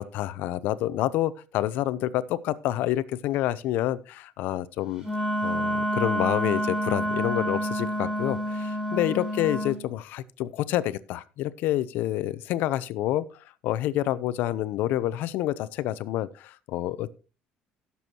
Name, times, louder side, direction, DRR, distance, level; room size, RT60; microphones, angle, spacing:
voice 1, 0.0-5.1 5.4-13.2 13.6-17.1, left 14 dB, 70° left, 16 dB, 0.7 m, -28 dB
Wind instrument woodwind instrument, 5.0-9.8, equal, 15° right, 3.9 m, -28 dB
17.0 x 7.0 x 2.9 m, 0.32 s
cardioid pair, 130°, 3 cm